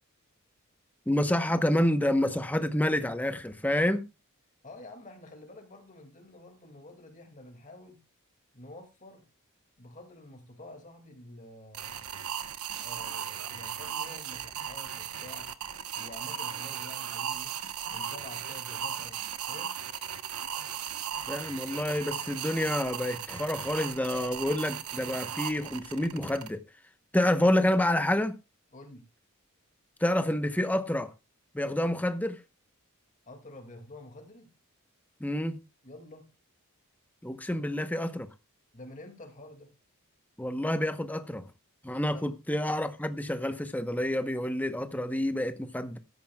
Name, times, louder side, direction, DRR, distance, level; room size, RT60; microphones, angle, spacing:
voice 1, 1.1-4.1 21.3-26.6 27.1-28.3 30.0-31.1 31.5-32.4 35.2-35.6 37.2-38.3 40.4-41.4 41.8-46.0, left 1 dB, 5° left, 0.9 m, -28 dB
voice 2, 4.6-8.0 8.5-9.2 9.8-12.0 12.8-15.5 16.0-17.5 17.9-19.2 19.5-19.8 28.7-29.1 33.3-34.5 35.8-36.3 37.5-37.6 38.7-39.7 42.1-42.3, left 1 dB, 35° left, 2.3 m, -48 dB
sound 1, 11.7-26.5, right 8 dB, 80° right, 1.1 m, -37 dB
15.5 x 13.0 x 2.3 m
head